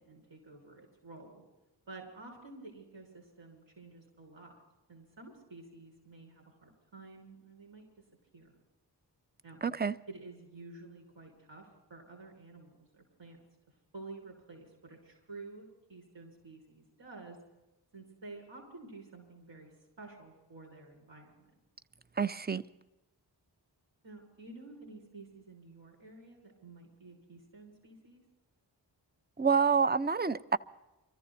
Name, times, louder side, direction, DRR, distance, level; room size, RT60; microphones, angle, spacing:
voice 1, 0.0-1.4 1.9-4.5 4.9-7.8 8.3-8.6 9.4-9.6 10.1-13.4 13.9-17.4 17.9-19.7 20.0-21.5 24.0-28.2, right 3 dB, 75° right, 6.7 m, -51 dB
voice 2, 9.6-10.0 22.2-22.6 29.4-30.6, right 5 dB, 20° right, 0.6 m, -28 dB
24.0 x 14.5 x 4.2 m
cardioid pair, 50°, 45 cm